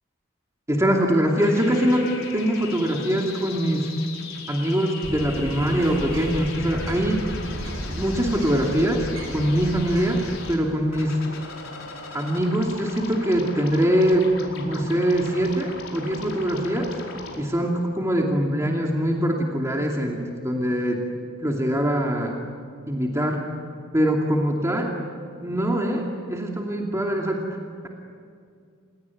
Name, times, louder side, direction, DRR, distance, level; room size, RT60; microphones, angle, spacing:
voice 1, 0.7-3.9 4.5-7.2 8.0-10.2 10.5-11.2 12.1-16.9 17.4-21.0 21.4-22.3 22.9-23.4 23.9-24.9 25.4-27.4, equal, 15° right, 0 dB, 2.6 m, -23 dB
sound 1, 1.4-10.6 10.9-17.4, left 4 dB, 75° left, 4.9 m, -39 dB
Bird, 5.0-11.0, equal, 80° right, 7.8 m, -35 dB
29.5 x 18.0 x 9.8 m, 2.3 s
head